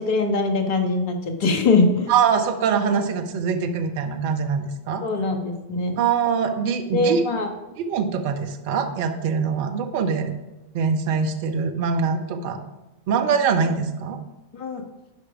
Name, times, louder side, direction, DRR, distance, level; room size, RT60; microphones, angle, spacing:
voice 1, 0.0-2.1 5.0-6.0 6.9-7.5 14.5-14.8, left 3 dB, 45° left, 6 dB, 1.4 m, -22 dB
voice 2, 2.1-5.0 6.0-7.2 7.8-10.3 10.7-12.6 13.1-14.2, right 6 dB, 50° right, 6 dB, 1.0 m, -23 dB
10.5 x 5.0 x 5.0 m, 1.0 s
figure-of-eight pair, 90°, 0 cm